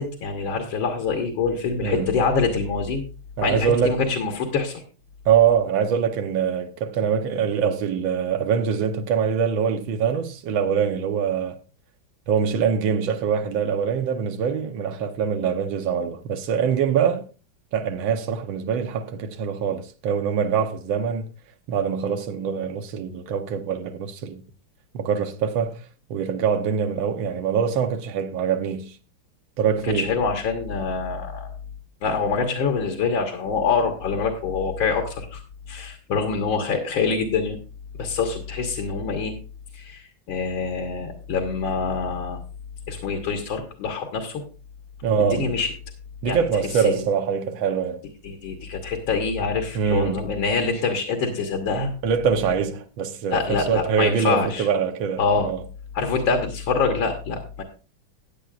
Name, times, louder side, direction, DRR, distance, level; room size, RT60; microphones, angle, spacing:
voice 1, 0.0-3.0 3.4-4.8 29.8-31.5 32.0-35.4 35.7-37.6 38.0-39.3 39.7-42.4 42.9-44.4 45.3-45.7 46.3-46.5 46.7-47.1 48.2-51.9 53.3-54.7 55.2-55.5 55.9-57.6, left 4 dB, 80° left, 2.1 m, -25 dB
voice 2, 1.8-2.2 3.4-4.0 5.3-11.6 12.3-17.3 17.7-21.3 21.7-24.4 24.9-25.8 26.1-29.0 29.6-30.1 45.0-45.5 46.2-48.0 49.8-50.3 52.0-55.6, right 7 dB, 75° right, 1.6 m, -24 dB
15.0 x 9.4 x 2.4 m
omnidirectional pair, 2.2 m